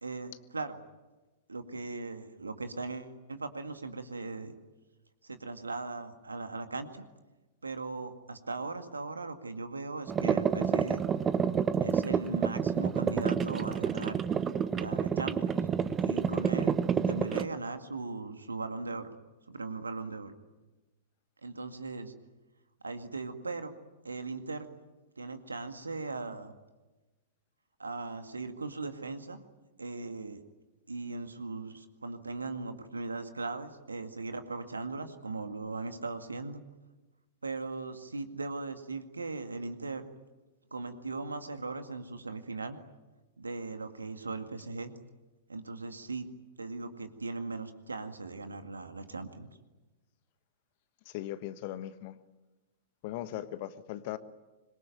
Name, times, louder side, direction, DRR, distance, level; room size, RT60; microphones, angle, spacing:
voice 1, 0.0-0.8 1.5-4.5 5.2-7.0 7.6-11.0 11.8-14.2 14.7-15.7 16.0-19.1 19.5-20.3 21.4-22.1 22.8-23.7 24.0-24.7 25.2-26.5 27.8-29.4 29.8-30.4 30.9-36.6 37.4-40.0 40.7-42.8 43.4-44.9 45.5-46.3 46.6-49.5, right 3 dB, 80° right, 8 dB, 2.1 m, -38 dB
sound 1, 10.1-17.4, right 7 dB, 20° right, 1.1 m, -29 dB
voice 2, 51.0-52.1 53.0-54.2, left 13 dB, 45° left, 13 dB, 1.4 m, -38 dB
25.5 x 22.5 x 9.2 m, 1.1 s
figure-of-eight pair, 100°, 0 cm